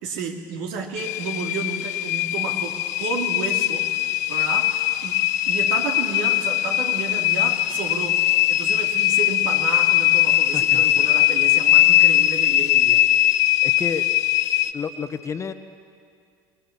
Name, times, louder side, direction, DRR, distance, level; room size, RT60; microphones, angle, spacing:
voice 1, 0.0-5.2 5.5-8.2 8.5-13.1, right 5 dB, 70° right, 2 dB, 2.6 m, -32 dB
sound 1, 1.0-14.7, left 14 dB, 80° left, 0.8 m, -20 dB
voice 2, 10.5-11.1 13.6-14.1 14.7-15.5, left 6 dB, 35° left, 9 dB, 1.3 m, -30 dB
24.0 x 20.0 x 7.2 m, 2.2 s
hypercardioid pair, 75°, 9 cm